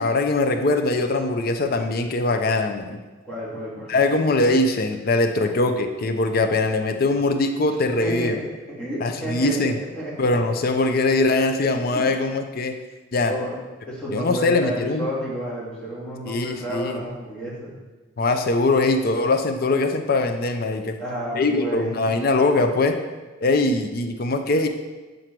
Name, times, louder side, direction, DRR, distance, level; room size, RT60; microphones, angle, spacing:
voice 1, 0.0-3.0 3.9-8.4 9.0-9.8 10.2-12.7 13.1-13.3 14.1-15.1 16.3-17.0 18.2-21.0 21.3-23.0 23.4-24.7, left 2 dB, 50° left, 7 dB, 0.5 m, -22 dB
voice 2, 3.2-3.9 5.4-5.5 8.0-8.5 8.8-10.4 11.9-12.3 13.3-13.6 13.9-17.7 21.0-21.9, right 1 dB, 5° left, -9 dB, 2.2 m, -31 dB
7.5 x 3.9 x 4.5 m, 1.2 s
head